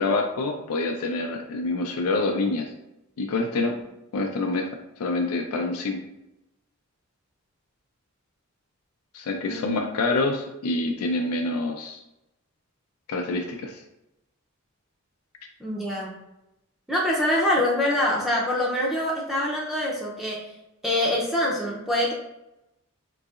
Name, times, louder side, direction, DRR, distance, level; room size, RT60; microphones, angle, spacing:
voice 1, 0.0-2.7 3.2-3.8 4.1-4.7 5.0-6.0 9.1-12.0 13.1-13.8, left 2 dB, 85° left, 2 dB, 0.4 m, -26 dB
voice 2, 9.5-9.9 15.6-16.2 16.9-20.5 20.8-22.1, left 1 dB, ahead, -4 dB, 0.5 m, -25 dB
3.9 x 2.7 x 2.4 m, 0.90 s
head